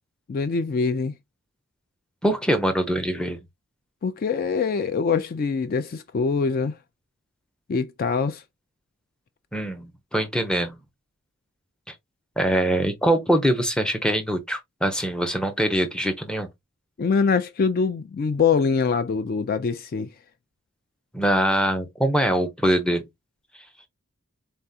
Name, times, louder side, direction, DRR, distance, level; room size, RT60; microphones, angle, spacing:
voice 1, 0.3-1.1 4.0-6.8 7.7-8.4 17.0-20.1, left 5 dB, 40° left, 0.3 m, -24 dB
voice 2, 2.2-3.4 9.5-10.8 11.9-12.0 12.4-16.5 21.1-23.1, right 1 dB, 5° left, 0.6 m, -23 dB
4.1 x 3.5 x 2.6 m
head